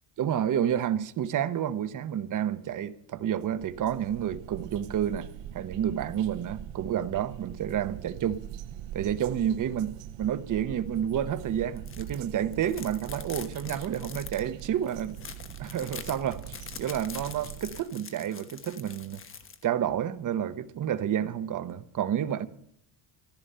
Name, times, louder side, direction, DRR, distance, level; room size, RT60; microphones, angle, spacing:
voice 1, 0.2-5.3 5.5-8.4 8.9-15.2 15.6-16.4 16.8-19.2 19.6-22.5, right 10 dB, 45° right, 1.0 m, -30 dB
sound 1, 3.4-17.8, right 12 dB, 70° right, 0.7 m, -42 dB
sound 2, 11.8-12.2 12.5-19.6, left 6 dB, 30° left, 1.2 m, -44 dB
15.0 x 13.0 x 6.8 m
cardioid pair, 145°, 45 cm